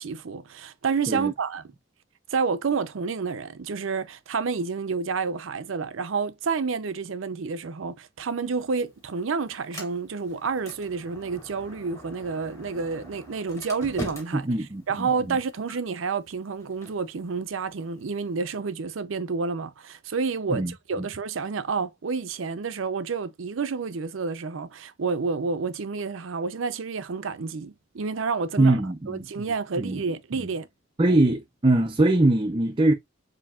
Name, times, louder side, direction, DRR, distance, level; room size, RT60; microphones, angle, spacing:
voice 1, 0.0-1.6 2.3-14.5 14.9-28.8 29.1-30.7, right 5 dB, 75° right, 0.5 m, -29 dB
Sliding door, 8.4-18.4, right 1 dB, 15° left, 2.3 m, -44 dB
voice 2, 14.3-15.4 20.5-20.7 28.6-29.5 29.8-30.0 31.0-32.9, right 2 dB, 25° right, 0.5 m, -22 dB
7.0 x 2.8 x 2.4 m
head